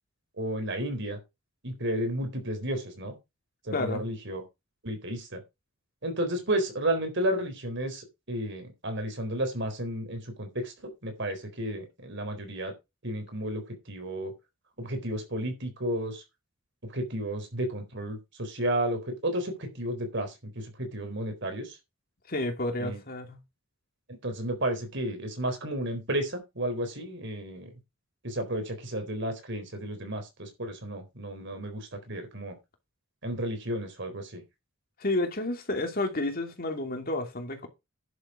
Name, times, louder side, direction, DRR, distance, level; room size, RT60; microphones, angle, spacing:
voice 1, 0.4-1.2 1.6-3.2 3.7-4.4 4.8-5.4 6.0-12.7 13.0-14.3 14.8-16.2 16.8-21.8 22.8-23.0 24.1-27.7 28.2-32.5 33.2-34.4, right 1 dB, 60° right, 3.9 m, -32 dB
voice 2, 3.7-4.1 22.3-23.4 35.0-37.7, left 2 dB, 45° left, 2.7 m, -30 dB
11.0 x 7.3 x 4.9 m
head